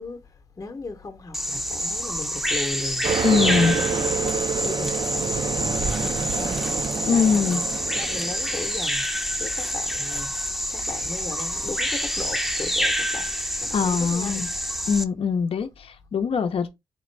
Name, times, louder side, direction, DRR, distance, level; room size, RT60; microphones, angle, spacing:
voice 1, 0.0-7.4 7.9-9.1 9.4-14.4, left 3 dB, 35° left, 0.8 m, -37 dB
Bird vocalization bird call bird song, 1.3-15.0, equal, ahead, 0.6 m, -27 dB
sound 1, 3.0-8.6, right 5 dB, 50° right, 0.4 m, -28 dB
voice 2, 3.2-3.8 7.0-7.6 13.7-14.5 14.9-16.7, left 6 dB, 65° left, 0.5 m, -22 dB
3.7 x 2.4 x 3.2 m
cardioid pair, 55°, 10 cm